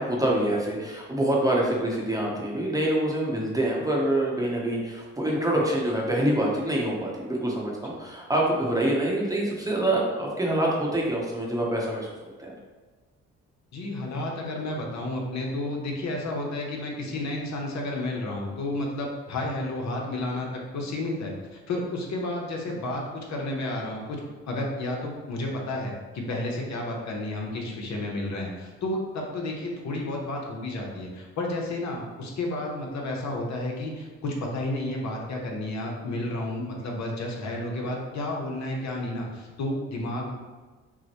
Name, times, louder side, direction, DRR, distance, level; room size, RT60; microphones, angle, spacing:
voice 1, 0.0-12.1 12.4-12.5, right 1 dB, 10° right, -3 dB, 0.9 m, -26 dB
voice 2, 13.7-20.5 20.7-24.2 24.5-40.3, left 1 dB, 65° left, -1 dB, 0.9 m, -31 dB
5.9 x 2.1 x 3.0 m, 1.3 s
cardioid pair, 90°, 30 cm